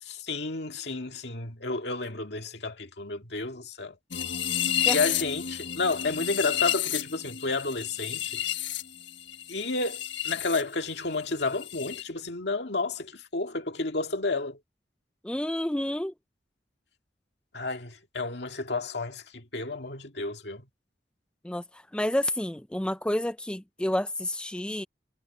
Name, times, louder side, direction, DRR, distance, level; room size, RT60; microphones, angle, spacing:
voice 1, 0.2-4.0 4.9-8.4 9.5-14.6 17.5-20.7, left 3 dB, 65° left, 2.2 m, -31 dB
sound 1, 4.1-10.6 10.9-12.0, left 11 dB, 80° left, 1.4 m, -31 dB
voice 2, 15.2-16.1 21.4-24.8, left 1 dB, 5° left, 0.4 m, -30 dB
head